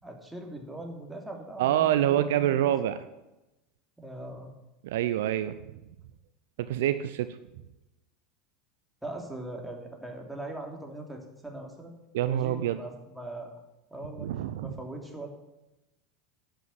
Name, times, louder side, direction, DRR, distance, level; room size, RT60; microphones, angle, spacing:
voice 1, 0.0-2.7 4.0-4.5 9.0-11.9 12.3-13.5 13.9-14.3 14.6-15.3, right 1 dB, 5° right, 1 dB, 3.2 m, -41 dB
voice 2, 1.6-3.0 4.8-5.6 6.7-7.3 12.1-12.8 14.2-14.8, right 12 dB, 65° right, 12 dB, 0.6 m, -26 dB
11.0 x 9.0 x 7.3 m, 0.98 s
figure-of-eight pair, 80°, 0 cm